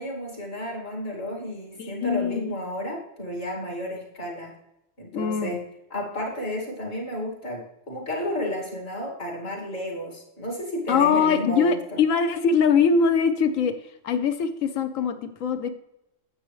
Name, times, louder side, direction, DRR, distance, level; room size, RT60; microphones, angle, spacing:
voice 1, 0.0-4.5 5.0-5.6 5.9-12.0, equal, 50° left, -1 dB, 2.6 m, -32 dB
voice 2, 1.8-2.5 5.1-5.5 10.9-13.7 14.0-15.7, left 6 dB, 85° left, 9 dB, 1.2 m, -22 dB
9.5 x 7.7 x 3.2 m, 0.85 s
omnidirectional pair, 1.3 m